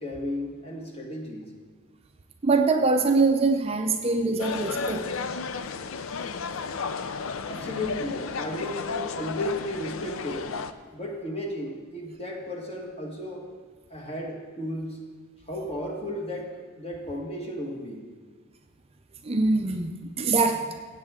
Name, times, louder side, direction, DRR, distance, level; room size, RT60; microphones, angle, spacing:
voice 1, 0.0-1.6 7.5-10.5 10.9-13.5 13.9-15.0 15.5-18.2, left 1 dB, 30° left, 0 dB, 1.7 m, -34 dB
voice 2, 2.4-5.1 19.3-19.9 20.2-20.7, right 3 dB, 30° right, 5 dB, 0.5 m, -23 dB
sound 1, 4.4-10.7, left 5 dB, 70° left, 0.5 m, -33 dB
16.0 x 8.1 x 3.7 m, 1.5 s
head